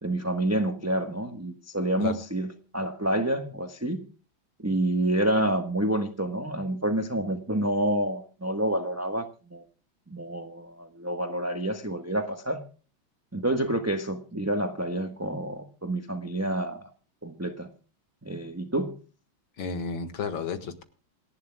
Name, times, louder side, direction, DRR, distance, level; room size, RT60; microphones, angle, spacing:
voice 1, 0.0-4.0 4.6-9.2 9.5-9.6 10.1-12.6 13.3-16.9 17.2-17.7 18.2-19.0, right 1 dB, 10° right, 6 dB, 0.9 m, -28 dB
voice 2, 19.6-20.8, left 5 dB, 75° left, 9 dB, 2.4 m, -32 dB
27.5 x 11.5 x 2.3 m, 0.37 s
omnidirectional pair, 2.2 m